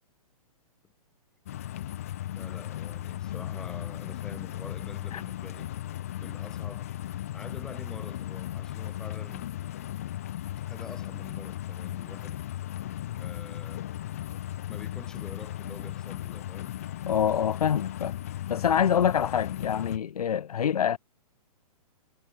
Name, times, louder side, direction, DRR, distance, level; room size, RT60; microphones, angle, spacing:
sound 1, 1.5-20.0, left 13 dB, 25° left, 0.5 m, -36 dB
voice 1, 2.3-5.7 6.2-6.9 7.3-9.5 10.6-12.4 13.2-13.9 14.7-16.7, left 4 dB, 5° left, 1.0 m, -46 dB
voice 2, 17.0-18.2 18.5-21.0, left 8 dB, 75° left, 1.0 m, -25 dB
hypercardioid pair, 180°, 20 cm